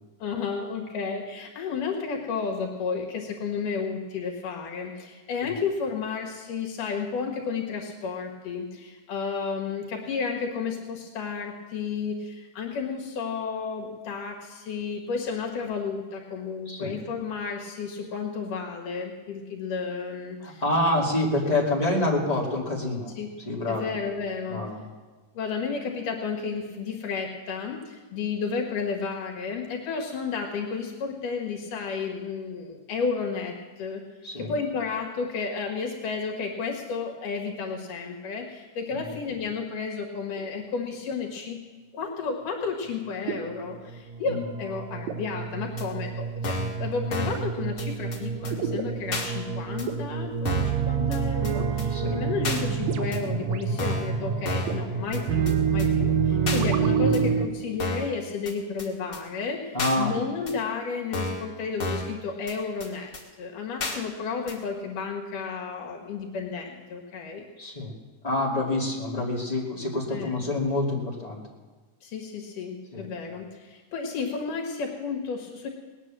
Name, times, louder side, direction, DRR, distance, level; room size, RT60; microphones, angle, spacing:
voice 1, 0.2-20.6 20.9-21.0 23.2-23.3 23.7-24.6 25.3-34.0 34.4-41.7 41.9-63.1 63.4-67.5 70.1-70.4 72.0-75.7, left 5 dB, 75° left, 0 dB, 3.1 m, -32 dB
voice 2, 16.7-17.0 20.4-23.1 23.5-23.9 24.5-24.8 34.2-34.5 38.9-39.1 44.2-44.4 51.9-52.2 56.9-57.1 59.7-60.1 67.6-67.9 68.2-71.4 72.9-73.1, left 1 dB, 15° left, -2 dB, 2.0 m, -27 dB
sound 1, 40.4-40.6 43.3-57.5, right 6 dB, 70° right, 1.9 m, -28 dB
sound 2, 45.8-45.9 46.4-46.8 47.1-47.4 47.8-47.9 48.1-48.2 48.4-48.5 49.1-49.3 49.8-49.9 50.4-50.8 51.1-51.2 51.4-51.5 51.8-51.9 52.4-52.6 53.1-53.2 53.8-54.1 54.4-54.8 55.1-55.2 55.5-55.6 55.8-55.9 56.5-56.6 57.1-57.2 57.8-58.1 58.5-58.6 58.8-58.9 59.1-59.2 59.8-60.0 60.5-60.6 61.1-61.5 61.8-62.1 62.5-62.6 62.8-62.9 63.1-63.2 63.8-64.0 64.5-64.6, left 2 dB, 35° left, 1.8 m, -31 dB
18.5 x 9.7 x 7.5 m, 1.3 s
omnidirectional pair, 3.8 m